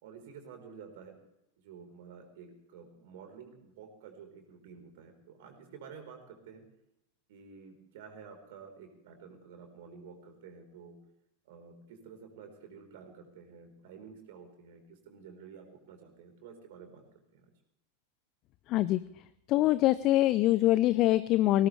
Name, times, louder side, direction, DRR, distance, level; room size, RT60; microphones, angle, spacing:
voice 1, 0.0-1.2 1.6-6.6 7.3-11.0 11.4-17.0 17.3-17.5, right 6 dB, 50° right, 5 dB, 4.2 m, -51 dB
voice 2, 18.7-19.0 19.5-21.7, left 15 dB, 40° left, 15 dB, 0.6 m, -24 dB
19.5 x 19.0 x 3.3 m, 0.81 s
figure-of-eight pair, 90°, 0 cm